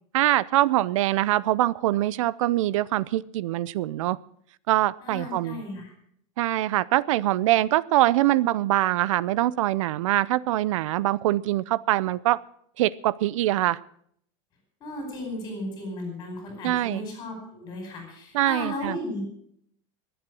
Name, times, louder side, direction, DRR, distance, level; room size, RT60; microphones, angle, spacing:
voice 1, 0.1-4.2 4.7-5.6 6.4-12.4 12.8-13.8 16.6-17.0 18.3-19.0, right 15 dB, 85° right, 21 dB, 0.6 m, -23 dB
voice 2, 5.0-5.9 14.8-19.2, left 1 dB, 20° left, 2 dB, 4.6 m, -35 dB
22.0 x 8.1 x 6.2 m, 0.66 s
supercardioid pair, 180°, 16 cm